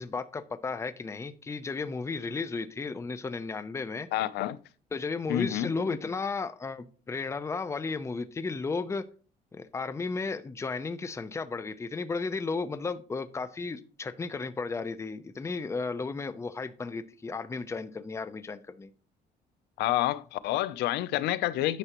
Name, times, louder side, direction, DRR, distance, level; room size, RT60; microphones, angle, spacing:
voice 1, 0.0-4.1 4.9-9.0 9.5-18.9, left 4 dB, 15° left, 0.6 m, -34 dB
voice 2, 4.1-4.6 5.3-5.7 19.8-21.8, left 13 dB, 80° left, 0.6 m, -28 dB
9.9 x 6.0 x 3.0 m
cardioid pair, 110°, 17 cm